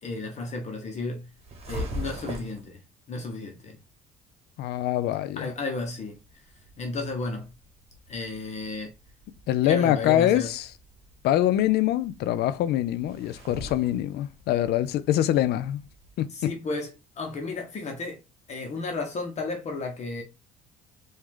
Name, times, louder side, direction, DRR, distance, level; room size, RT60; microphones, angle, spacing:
voice 1, 0.0-1.2 1.7-2.8 3.1-3.8 5.4-6.2 6.8-7.5 8.1-8.9 9.6-10.5 16.3-16.9 17.2-18.2 18.5-20.2, left 3 dB, 40° left, 1.2 m, -33 dB
sound 1, 1.3-2.7 6.1-16.2, equal, 35° right, 1.6 m, -42 dB
voice 2, 4.6-5.5 9.5-10.7 11.2-15.8 16.2-16.5, left 12 dB, 75° left, 0.5 m, -24 dB
4.7 x 2.8 x 3.7 m
cardioid pair, 110°, 17 cm